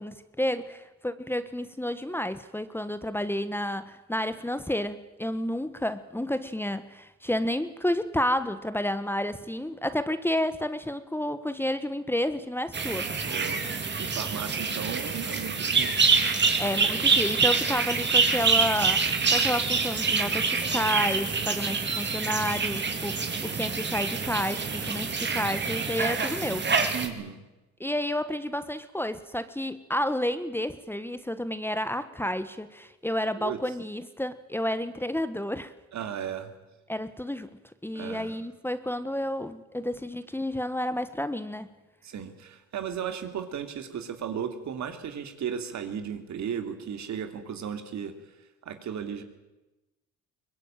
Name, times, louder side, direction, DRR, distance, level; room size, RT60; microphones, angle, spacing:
voice 1, 0.0-13.1 16.6-26.7 27.8-35.7 36.9-37.5 37.8-41.7, left 1 dB, 5° left, 12 dB, 1.3 m, -30 dB
sound 1, 12.7-27.1, right 5 dB, 35° right, 3.1 m, -26 dB
voice 2, 13.3-13.7 14.0-16.1 26.9-27.4 33.4-33.6 35.9-36.5 37.9-38.4 42.0-48.1 48.6-49.2, right 8 dB, 65° right, 7 dB, 3.0 m, -35 dB
23.0 x 20.5 x 9.1 m, 1.0 s
cardioid pair, 90°, 30 cm